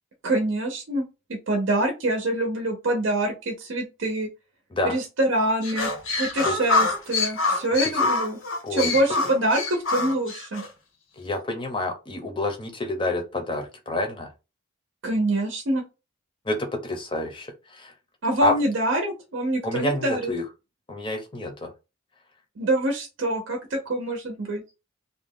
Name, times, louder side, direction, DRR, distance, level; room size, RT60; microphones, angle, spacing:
voice 1, 0.2-1.0 1.3-4.3 4.8-5.9 6.2-8.4 8.7-10.6 15.0-15.8 18.2-20.3 22.6-24.6, right 1 dB, 65° right, 2 dB, 0.6 m, -25 dB
sound 1, 5.6-10.7, left 3 dB, 70° left, 0.8 m, -25 dB
voice 2, 11.2-14.3 16.5-17.9 18.4-18.5 19.6-20.4 20.9-21.7, left 2 dB, 25° left, 4 dB, 0.6 m, -28 dB
2.6 x 2.2 x 3.5 m, 0.28 s
head